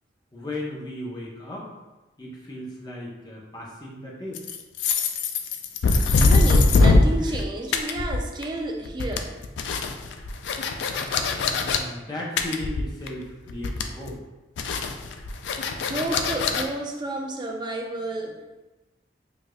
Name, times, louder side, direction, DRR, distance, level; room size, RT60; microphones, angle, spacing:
voice 1, 0.3-1.7 2.2-4.5 11.4-14.2, left 1 dB, 25° left, -4 dB, 0.7 m, -36 dB
sound 1, 4.3-7.4 7.7-8.6 8.9-11.8 12.4-13.2 13.5-14.1 14.6-16.6, left 3 dB, 80° left, 0.3 m, -22 dB
voice 2, 6.1-9.3 15.7-18.4, right 2 dB, 25° right, 2 dB, 0.3 m, -31 dB
4.8 x 2.5 x 2.3 m, 1.1 s
head